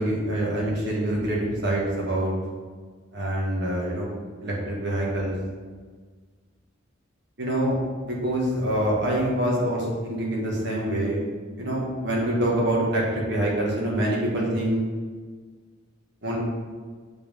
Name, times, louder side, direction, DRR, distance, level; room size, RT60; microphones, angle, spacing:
voice 1, 0.0-2.3 3.1-4.1 4.4-5.3 7.4-7.7 8.0-11.2 11.6-14.8 16.2-16.4, right 1 dB, 60° right, -4 dB, 2.0 m, -25 dB
6.5 x 5.5 x 3.8 m, 1.5 s
head